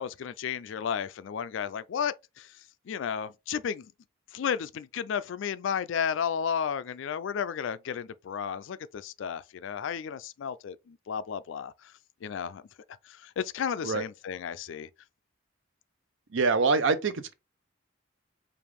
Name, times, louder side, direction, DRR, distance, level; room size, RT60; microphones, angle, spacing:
voice 1, 0.0-2.5 2.9-3.9 4.3-11.7 12.2-12.6 13.1-14.9, left 7 dB, 65° left, 0.3 m, -33 dB
voice 2, 16.3-17.3, right 4 dB, 65° right, 0.6 m, -25 dB
4.9 x 2.5 x 3.5 m
head